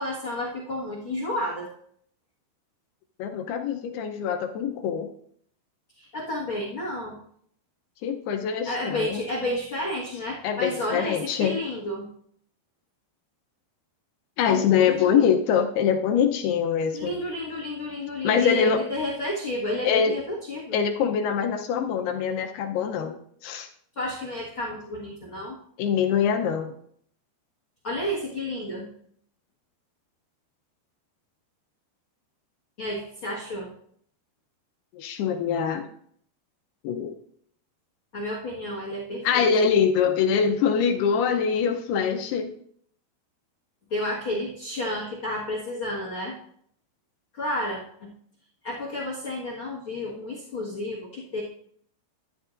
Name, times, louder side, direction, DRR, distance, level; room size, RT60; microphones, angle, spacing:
voice 1, 0.0-1.7 6.0-7.2 8.6-12.1 14.5-15.3 16.9-20.8 23.9-25.6 27.8-28.9 32.8-33.7 38.1-39.4 43.9-46.4 47.4-48.1 48.6-51.4, left 1 dB, 55° left, -3 dB, 1.4 m, -31 dB
voice 2, 3.2-5.1 8.0-9.2 10.4-11.6 14.4-17.2 18.2-18.8 19.8-20.2 20.7-23.2 23.4-23.7 25.8-26.7 34.9-35.9 36.8-37.2 39.2-42.5, left 7 dB, 80° left, 4 dB, 2.6 m, -24 dB
13.0 x 10.5 x 2.5 m, 0.65 s
omnidirectional pair, 4.8 m